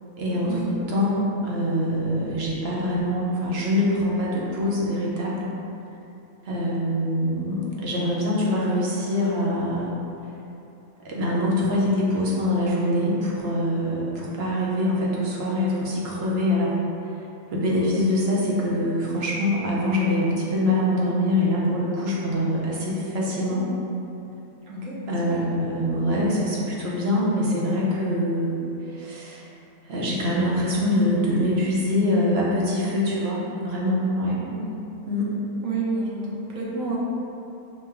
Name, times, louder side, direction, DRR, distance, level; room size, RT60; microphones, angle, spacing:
voice 1, 0.2-5.5 6.4-9.9 11.0-16.8 17.5-23.7 25.1-29.5 29.8-34.4 35.1-35.3, left 1 dB, 55° right, -5 dB, 0.8 m, -24 dB
voice 2, 24.7-25.0 25.3-25.4 34.5-34.7 35.6-37.0, right 3 dB, 75° right, -5 dB, 1.2 m, -29 dB
5.3 x 2.2 x 3.4 m, 2.8 s
omnidirectional pair, 1.4 m